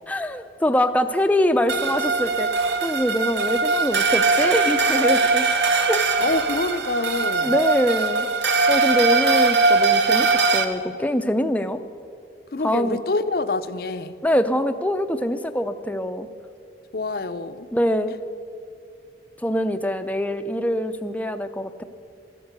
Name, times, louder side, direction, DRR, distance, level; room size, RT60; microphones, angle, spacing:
voice 1, 0.1-5.4 5.9-6.0 7.4-8.3 8.7-11.8 12.6-13.0 14.2-16.3 17.7-18.1 19.4-21.8, equal, 10° left, 8 dB, 0.5 m, -24 dB
sound 1, 1.7-10.6, right 4 dB, 70° right, 1.1 m, -21 dB
voice 2, 6.2-7.6 12.5-14.1 16.9-17.7, left 3 dB, 55° left, 12 dB, 0.6 m, -26 dB
13.0 x 12.5 x 8.2 m, 2.5 s
head